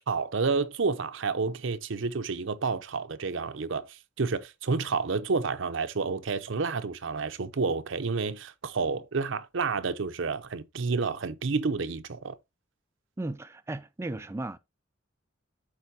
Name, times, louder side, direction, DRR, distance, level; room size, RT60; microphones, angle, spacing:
voice 1, 0.1-12.4, right 4 dB, 70° right, 0.7 m, -30 dB
voice 2, 13.2-14.6, right 2 dB, 15° right, 0.3 m, -35 dB
12.0 x 4.4 x 2.7 m
head